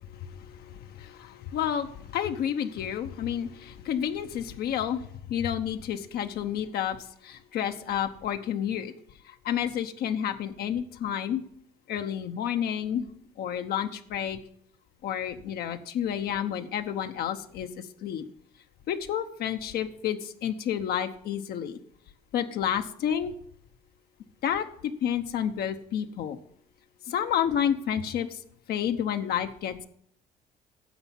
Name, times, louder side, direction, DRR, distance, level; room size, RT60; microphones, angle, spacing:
voice 1, 0.1-7.0 7.2-8.9 9.2-11.4 11.9-13.1 13.4-14.4 15.0-18.2 18.9-21.8 22.3-23.3 24.4-26.4 27.1-28.4 28.7-29.9, left 9 dB, 70° left, 7 dB, 0.9 m, -30 dB
10.0 x 7.1 x 7.2 m, 0.66 s
cardioid pair, 110°, 17 cm